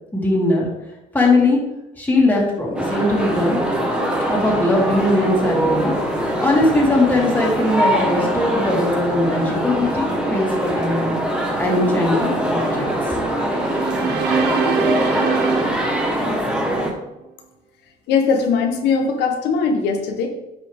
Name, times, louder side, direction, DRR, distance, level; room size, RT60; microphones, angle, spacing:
voice 1, 0.1-0.6 1.1-1.6 2.0-3.6 4.3-5.9 6.4-11.1 11.6-13.4, left 2 dB, 10° left, -4 dB, 2.9 m, -20 dB
sound 1, 2.8-16.9, equal, 5° right, 1.7 m, -22 dB
sound 2, 13.4-16.8, right 6 dB, 70° right, 0.9 m, -24 dB
voice 2, 18.1-20.3, left 5 dB, 85° left, 3 dB, 1.2 m, -20 dB
9.7 x 5.7 x 3.7 m, 0.92 s
cardioid pair, 110°, 17 cm